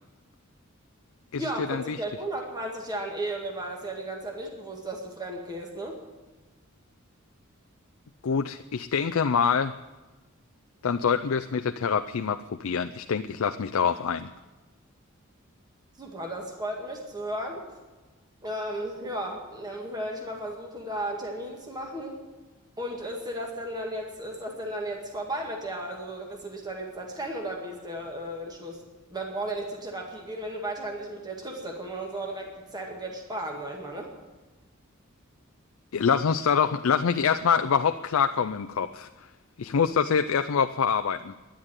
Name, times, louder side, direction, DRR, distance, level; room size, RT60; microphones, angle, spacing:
voice 1, 1.4-6.0 16.0-17.6 18.4-22.2 22.8-28.8 29.1-34.1, right 1 dB, 20° right, 1 dB, 1.9 m, -34 dB
voice 2, 8.2-9.7 10.8-14.3 35.9-39.1 39.6-41.3, left 6 dB, 80° left, 9 dB, 0.5 m, -25 dB
11.0 x 10.5 x 9.7 m, 1.2 s
head